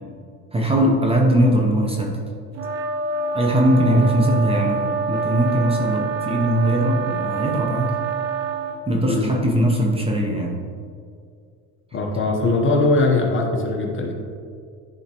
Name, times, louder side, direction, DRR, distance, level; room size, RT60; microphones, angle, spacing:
voice 1, 0.5-2.2 3.3-8.0 8.9-10.6, equal, 15° right, -1 dB, 0.7 m, -20 dB
sound 1, 2.6-8.8, right 5 dB, 45° right, 0.8 m, -26 dB
voice 2, 11.9-14.1, left 2 dB, 35° left, 1 dB, 1.0 m, -21 dB
10.5 x 3.6 x 3.0 m, 2.3 s
cardioid pair, 115°, 36 cm